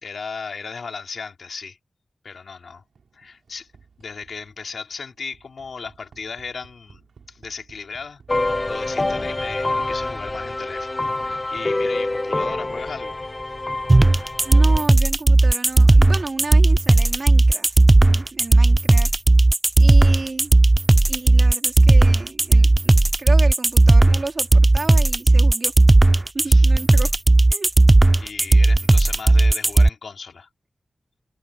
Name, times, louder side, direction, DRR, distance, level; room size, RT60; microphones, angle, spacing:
voice 1, 0.0-1.8 2.2-2.8 3.1-3.7 4.0-13.2 26.4-26.6 28.2-30.5, left 5 dB, 80° left, 3.3 m, -36 dB
sound 1, 2.7-13.6, right 5 dB, 85° right, 6.4 m, -54 dB
sound 2, 8.3-14.8, left 2 dB, 25° left, 1.4 m, -26 dB
sound 3, 13.9-29.9, right 2 dB, 20° right, 0.3 m, -14 dB
voice 2, 14.5-19.1 19.8-20.5 21.1-22.9 23.2-25.7 26.3-27.1 27.5-27.7, right 3 dB, 40° right, 3.9 m, -32 dB
wide cardioid pair, 125°, 0 cm